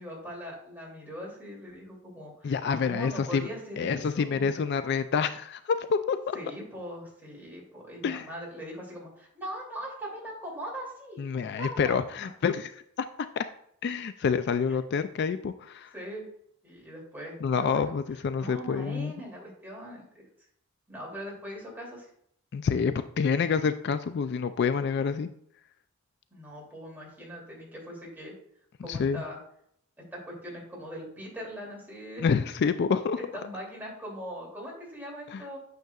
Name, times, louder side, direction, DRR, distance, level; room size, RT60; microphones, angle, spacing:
voice 1, 0.0-4.5 6.3-11.2 11.5-12.0 14.7-14.8 15.9-16.3 16.6-18.0 18.4-20.3 20.9-22.1 26.3-28.3 28.8-29.4 30.1-32.3 33.2-35.6, equal, 10° right, -3 dB, 2.7 m, -41 dB
voice 2, 2.4-3.5 3.8-6.4 8.0-8.3 11.2-12.7 13.0-13.1 13.4-13.5 13.8-15.9 17.4-19.1 22.5-25.3 28.9-29.2 32.2-33.2 35.3-35.4, left 6 dB, 55° left, 11 dB, 0.3 m, -27 dB
9.2 x 6.5 x 2.4 m, 0.69 s
head